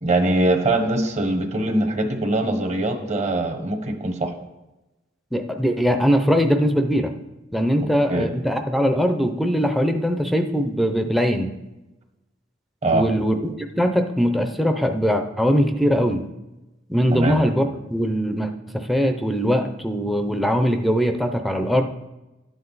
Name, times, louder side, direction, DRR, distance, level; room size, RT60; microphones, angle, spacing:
voice 1, 0.0-4.3 7.8-8.3 12.8-13.0 17.1-17.4, right 2 dB, 35° right, 5 dB, 1.1 m, -22 dB
voice 2, 5.3-7.1 7.5-11.5 12.9-16.3 16.9-21.8, equal, ahead, 6 dB, 0.5 m, -21 dB
12.5 x 7.8 x 4.0 m, 1.0 s
head